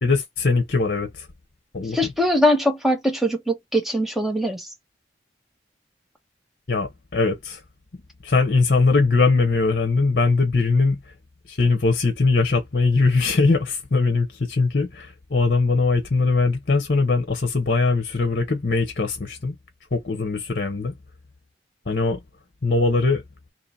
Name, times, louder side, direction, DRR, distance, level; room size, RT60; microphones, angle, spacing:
voice 1, 0.0-1.3 1.7-2.0 6.7-7.6 8.2-11.0 11.5-19.5 19.9-20.9 21.9-22.2 22.6-23.2, left 3 dB, 55° left, 0.9 m, -21 dB
voice 2, 1.9-4.7, equal, ahead, 0.8 m, -21 dB
2.9 x 2.8 x 4.1 m
head